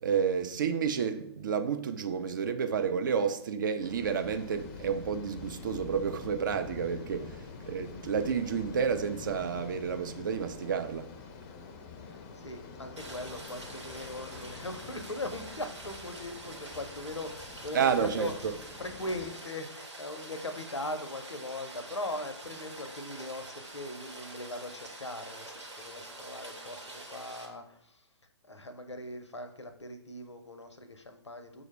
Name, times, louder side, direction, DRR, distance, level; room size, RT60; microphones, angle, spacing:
voice 1, 0.0-7.4 7.7-11.1 17.7-18.3, right 7 dB, 45° right, 0.4 m, -30 dB
sound 1, 3.8-19.3, left 5 dB, 20° left, 0.5 m, -46 dB
voice 2, 12.0-28.1 28.5-31.7, left 2 dB, 80° left, 0.6 m, -40 dB
Rain, 13.0-27.5, right 2 dB, 85° right, 0.9 m, -46 dB
6.1 x 2.0 x 3.3 m
figure-of-eight pair, 125°, 15 cm